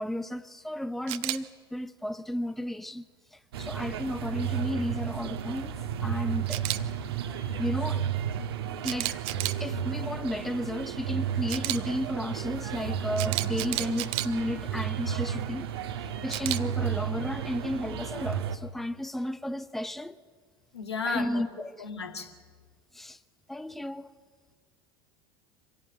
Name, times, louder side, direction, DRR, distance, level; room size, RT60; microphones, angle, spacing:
voice 1, 0.0-3.0 3.3-5.7 6.0-6.6 7.2-8.0 8.8-9.2 9.6-15.7 16.0-20.2 21.0-21.7 22.9-23.2 23.5-24.1, left 1 dB, ahead, 0.8 m, -33 dB
Camera, 1.1-1.4 6.5-6.8 8.8-9.6 11.5-11.8 13.2-14.3 16.3-16.6, right 17 dB, 50° right, 1.1 m, -31 dB
sound 1, 3.5-18.6, right 8 dB, 65° right, 1.5 m, -33 dB
voice 2, 20.7-21.4 21.8-22.4, left 4 dB, 80° left, 2.3 m, -33 dB
25.0 x 17.0 x 9.0 m
figure-of-eight pair, 75°, 14 cm